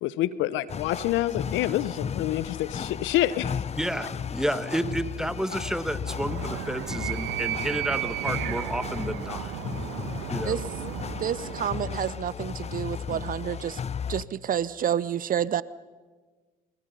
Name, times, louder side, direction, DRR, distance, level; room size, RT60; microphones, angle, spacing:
voice 1, 0.0-3.6, left 14 dB, 70° left, 17 dB, 0.9 m, -27 dB
sound 1, 0.7-14.2, left 7 dB, 30° left, 0.7 m, -35 dB
voice 2, 3.8-9.5 10.3-10.6, right 1 dB, 5° right, 12 dB, 1.4 m, -31 dB
Animal, 6.0-11.9, right 13 dB, 70° right, 1.3 m, -34 dB
voice 3, 11.2-13.8 14.1-15.6, right 9 dB, 45° right, 20 dB, 0.6 m, -29 dB
26.5 x 21.5 x 5.5 m, 1.4 s
hypercardioid pair, 65°, 20 cm